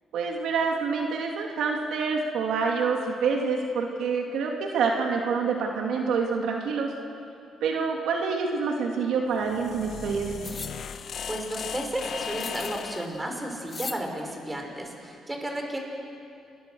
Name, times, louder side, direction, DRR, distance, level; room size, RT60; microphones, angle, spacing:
voice 1, 0.1-6.9 7.6-10.5, right 5 dB, 80° right, 1 dB, 2.8 m, -27 dB
sound 1, 9.4-13.2, left 7 dB, 60° left, 1.0 m, -37 dB
sound 2, 10.4-10.7 12.4-12.8 13.7-14.0, left 4 dB, 35° left, 1.6 m, -37 dB
voice 2, 10.9-15.8, right 1 dB, 15° right, 2 dB, 5.4 m, -33 dB
29.5 x 22.0 x 6.5 m, 2.6 s
cardioid pair, 90°, 0 cm